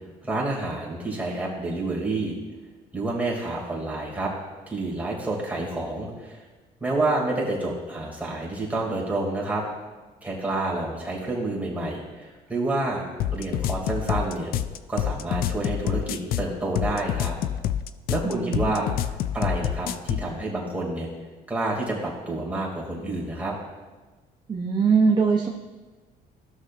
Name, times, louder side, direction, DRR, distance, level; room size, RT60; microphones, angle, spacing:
voice 1, 0.2-2.3 2.9-4.3 4.7-6.4 6.8-9.6 10.2-13.0 13.3-14.5 14.9-17.3 18.1-19.1 19.3-21.1 21.5-23.5, right 2 dB, 10° right, -3 dB, 2.4 m, -28 dB
sound 1, 13.2-20.3, left 11 dB, 65° left, 0.4 m, -27 dB
voice 2, 18.2-18.7 24.5-25.5, right 5 dB, 25° right, 1 dB, 0.7 m, -22 dB
14.5 x 6.3 x 2.5 m, 1.3 s
cardioid pair, 110°, 17 cm